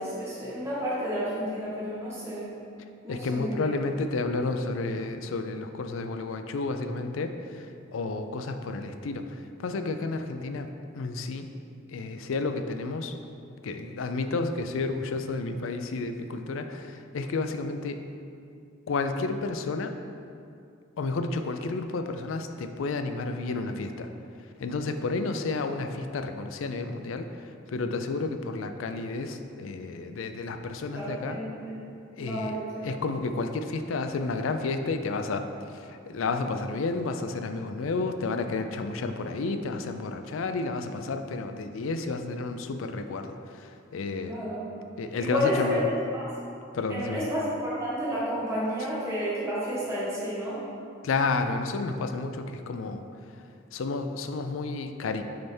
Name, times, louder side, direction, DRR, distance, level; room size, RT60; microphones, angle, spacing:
voice 1, 0.0-2.5 3.0-3.7 25.1-25.2 30.9-31.7 32.2-32.9 44.3-44.6 45.2-45.8 46.1-46.2 46.9-50.6, equal, 15° right, -9 dB, 1.2 m, -31 dB
voice 2, 3.1-10.7 10.9-11.5 11.9-13.2 13.6-18.0 18.9-19.9 21.0-24.1 24.6-31.4 32.2-44.3 45.0-45.8 46.7-47.3 51.0-53.0 53.7-55.2, left 3 dB, 80° left, 7 dB, 0.4 m, -31 dB
6.4 x 3.4 x 4.3 m, 2.5 s
head